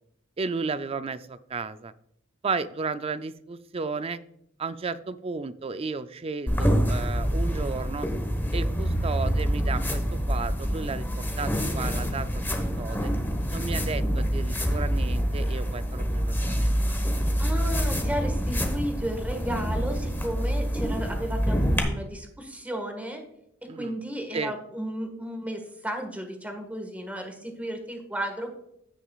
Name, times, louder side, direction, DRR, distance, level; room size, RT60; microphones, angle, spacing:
voice 1, 0.4-1.9 2.4-4.2 4.6-8.1 8.5-12.3 12.8-13.1 13.5-17.0 23.7-23.9 24.3-24.5, right 4 dB, 30° right, 12 dB, 0.4 m, -33 dB
sound 1, 6.5-21.8, equal, 10° left, 1.1 m, -26 dB
voice 2, 17.4-23.2 23.8-28.6, equal, 10° right, 4 dB, 1.5 m, -33 dB
15.5 x 6.2 x 2.4 m, 0.76 s
head